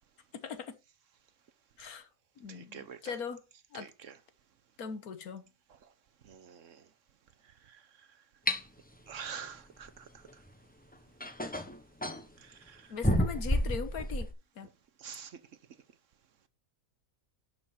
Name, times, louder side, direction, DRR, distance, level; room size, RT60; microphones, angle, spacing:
voice 1, 0.3-0.8 1.8-2.1 2.4-3.4 3.7-3.9 4.8-5.5 12.9-14.3 14.6-14.7, left 6 dB, 75° left, 1.6 m, -40 dB
voice 2, 2.5-3.2 3.7-4.2 6.2-6.8 7.7-7.8 9.1-10.1 12.4-12.9 15.0-15.4, right 7 dB, 60° right, 1.1 m, -46 dB
sound 1, 8.5-8.6 10.5-10.6 11.2-12.2 13.0-14.3, equal, 5° left, 0.8 m, -30 dB
11.5 x 6.3 x 4.4 m
omnidirectional pair, 1.6 m